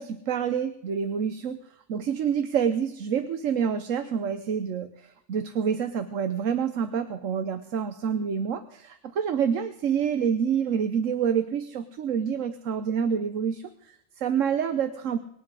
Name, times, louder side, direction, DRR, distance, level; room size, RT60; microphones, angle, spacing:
voice 1, 0.0-1.6 1.9-15.2, right 7 dB, 90° right, 9 dB, 1.3 m, -27 dB
25.0 x 9.5 x 4.9 m, 0.76 s
omnidirectional pair, 1.3 m